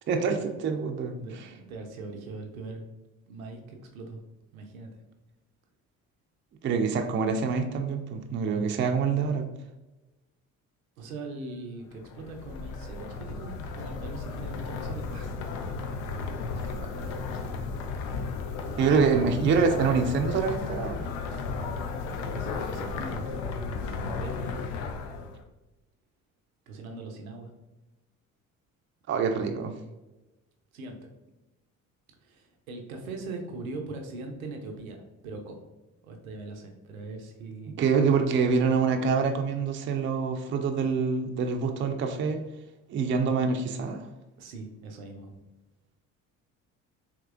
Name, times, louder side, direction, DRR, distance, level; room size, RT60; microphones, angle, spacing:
voice 1, 0.1-1.2 6.6-9.5 16.8-17.0 18.8-21.0 29.1-29.7 37.8-42.4 42.9-44.1, right 5 dB, 30° right, 5 dB, 0.4 m, -26 dB
voice 2, 1.2-2.8 3.3-4.2 4.5-5.0 11.0-15.3 15.6-15.9 18.5-18.8 22.2-23.3 23.7-24.4 26.7-27.5 30.7-30.9 32.2-35.7 36.0-37.9 44.4-45.4, right 3 dB, 90° right, 3 dB, 0.6 m, -41 dB
sound 1, 11.9-25.4, left 4 dB, 75° left, 0.5 m, -34 dB
Purr, 12.3-20.4, equal, 30° left, 1.0 m, -48 dB
3.5 x 2.9 x 2.4 m, 1.0 s
hypercardioid pair, 50°, 40 cm